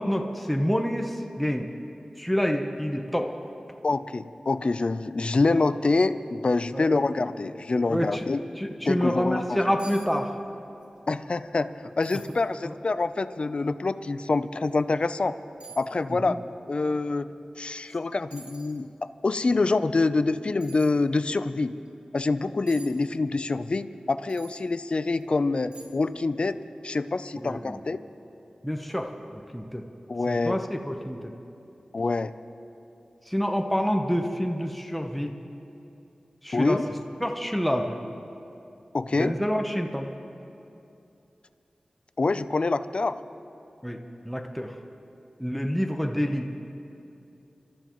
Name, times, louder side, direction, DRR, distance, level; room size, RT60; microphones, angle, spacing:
voice 1, 0.0-1.7 2.2-3.3 6.7-6.9 7.9-8.2 8.6-10.3 16.3-16.4 27.4-27.8 28.6-29.8 30.3-31.2 33.3-35.3 36.4-36.8 37.2-38.0 39.2-40.1 43.8-44.0 44.2-44.7 45.4-46.5, equal, 5° left, 3 dB, 0.9 m, -27 dB
voice 2, 3.8-8.4 8.9-9.8 11.1-11.7 12.0-15.3 15.8-16.4 16.7-17.3 17.6-21.7 22.1-26.6 26.8-28.0 30.1-30.6 31.9-32.3 36.5-36.9 38.9-39.4 42.2-43.2, left 3 dB, 55° left, 12 dB, 0.5 m, -26 dB
sound 1, 9.8-10.1 10.4-10.9 11.3-11.4 12.0-12.4 13.1-13.2 14.7-14.8 15.6-15.9 17.7-17.9 18.3-18.8 20.6-20.9 22.7-22.9 24.3-24.6 25.1-25.2 25.7-26.1 26.4-26.5, right 3 dB, 55° right, 2.4 m, -47 dB
29.5 x 13.0 x 3.1 m, 2.7 s
cardioid pair, 50°, 2 cm